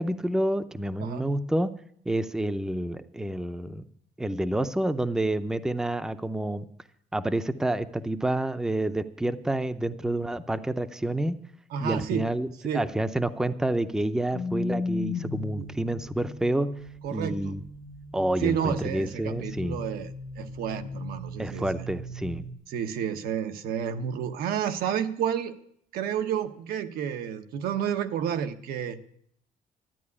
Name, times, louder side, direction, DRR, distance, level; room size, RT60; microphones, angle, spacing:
voice 1, 0.0-1.7 2.1-3.9 4.2-6.7 7.1-11.4 11.8-12.5 12.7-16.7 17.1-17.6 18.1-19.8 21.4-22.5, right 1 dB, 5° right, 11 dB, 0.6 m, -28 dB
voice 2, 11.7-12.3 12.6-12.9 15.6-15.7 17.0-17.6 18.4-20.1 20.4-21.9 22.7-25.6 25.9-29.0, right 8 dB, 80° right, 8 dB, 1.2 m, -30 dB
sound 1, 14.3-22.5, left 3 dB, 80° left, 1.8 m, -37 dB
12.5 x 9.4 x 9.7 m, 0.68 s
cardioid pair, 135°, 15 cm